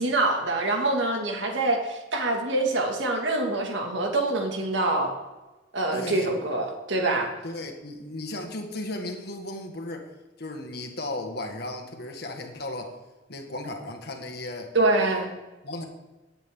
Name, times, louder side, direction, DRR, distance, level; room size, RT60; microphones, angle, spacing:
voice 1, 0.0-5.1 5.7-7.3 14.7-15.3, right 2 dB, 80° right, 2 dB, 2.2 m, -25 dB
voice 2, 5.9-6.3 7.4-10.1 10.4-12.9 13.3-14.7 15.6-15.9, left 2 dB, 60° left, 4 dB, 1.7 m, -35 dB
17.5 x 8.9 x 3.8 m, 1.1 s
head